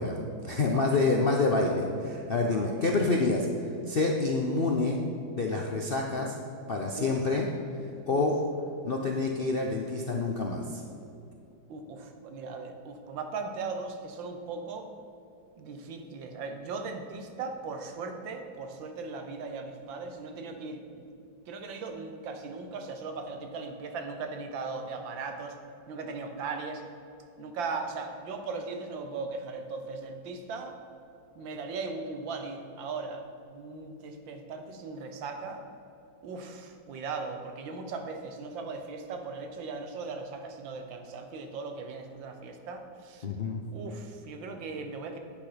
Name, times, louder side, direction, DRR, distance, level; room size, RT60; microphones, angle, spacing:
voice 1, 0.0-3.5 3.9-5.0 5.3-6.4 6.7-7.5 8.1-8.4 8.8-10.8 43.2-43.6, left 3 dB, 55° left, 0 dB, 0.6 m, -27 dB
voice 2, 0.7-1.0 2.5-2.8 7.0-7.1 8.1-8.3 11.7-14.9 15.6-21.0 21.5-25.6 25.9-26.8 27.4-30.8 31.4-33.2 33.5-35.7 36.2-43.3 43.7-45.2, right 4 dB, 75° right, 5 dB, 1.7 m, -38 dB
10.0 x 8.3 x 5.1 m, 2.7 s
omnidirectional pair, 2.1 m